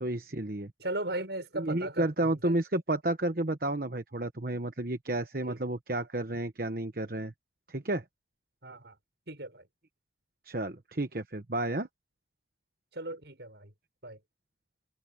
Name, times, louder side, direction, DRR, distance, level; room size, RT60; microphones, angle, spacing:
voice 1, 0.0-0.7 1.5-7.3 7.7-8.0 10.4-11.9, right 1 dB, 55° right, 1.2 m, -31 dB
voice 2, 0.8-2.6 5.5-5.6 8.6-9.0 9.3-9.7 12.9-13.7 14.0-14.2, right 1 dB, 75° right, 6.3 m, -37 dB
head